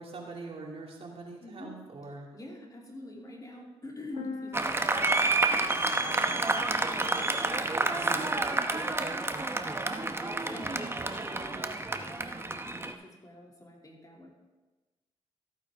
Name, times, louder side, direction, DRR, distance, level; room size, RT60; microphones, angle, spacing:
voice 1, 0.0-2.3 7.9-8.2, right 3 dB, 55° right, -1 dB, 2.6 m, -43 dB
voice 2, 1.4-1.8 2.3-7.8 8.5-14.3, left 1 dB, 30° left, -1 dB, 2.7 m, -47 dB
sound 1, 4.2-7.9, left 5 dB, 65° left, 1.0 m, -45 dB
Applause, 4.5-12.9, right 2 dB, 20° right, 0.9 m, -29 dB
14.5 x 8.7 x 3.6 m, 1.2 s
cardioid pair, 60°, 12 cm